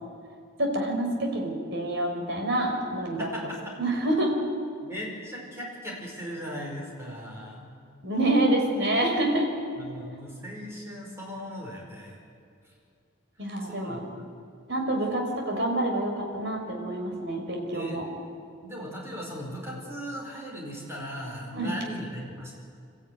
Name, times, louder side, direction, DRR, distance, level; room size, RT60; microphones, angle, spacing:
voice 1, 0.6-3.3 3.8-4.4 8.0-9.5 13.4-14.0 14.7-18.1 21.5-21.7, right 1 dB, 55° right, 2 dB, 4.4 m, -27 dB
voice 2, 3.2-3.8 4.8-7.7 9.8-12.2 13.7-14.0 17.7-18.1 18.6-22.5, equal, 10° right, -2 dB, 5.0 m, -38 dB
27.0 x 13.5 x 9.5 m, 2.4 s
head